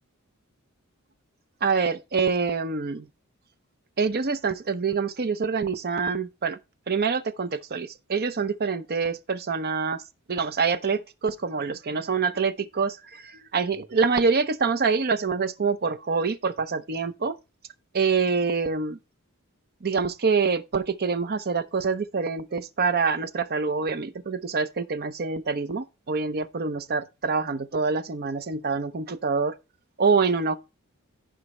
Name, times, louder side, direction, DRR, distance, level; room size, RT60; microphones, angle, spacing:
voice 1, 1.6-3.1 4.0-6.6 6.9-10.0 10.3-17.4 17.9-19.0 19.8-29.5 30.0-30.6, right 5 dB, 45° right, 0.7 m, -26 dB
14.5 x 5.3 x 3.2 m
head